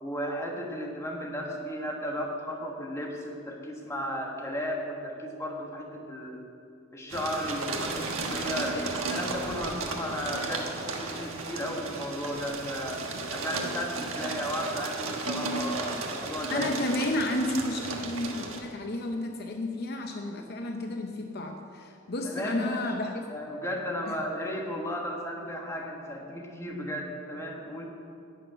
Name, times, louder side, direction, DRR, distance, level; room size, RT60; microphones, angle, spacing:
voice 1, 0.0-6.4 6.9-13.0 13.3-16.7 22.2-22.9 23.3-27.8, equal, 15° left, 0 dB, 1.4 m, -34 dB
sound 1, 7.1-18.6, right 3 dB, 90° right, 1.4 m, -34 dB
voice 2, 16.5-23.2 24.1-24.2, left 1 dB, 50° left, 4 dB, 0.7 m, -32 dB
11.5 x 6.5 x 8.9 m, 2.6 s
head